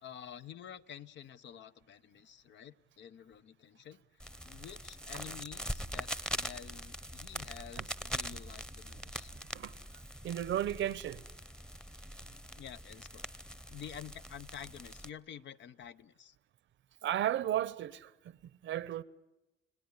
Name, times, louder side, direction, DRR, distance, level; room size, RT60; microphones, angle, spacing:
voice 1, 0.0-4.0 4.4-9.3 12.6-13.3 13.7-16.4, left 9 dB, 65° left, 0.8 m, -49 dB
sound 1, 4.2-15.1, equal, 5° left, 0.9 m, -43 dB
voice 2, 9.5-11.2 17.0-19.0, right 11 dB, 70° right, 0.9 m, -35 dB
30.0 x 17.5 x 9.7 m
cardioid pair, 90°, 20 cm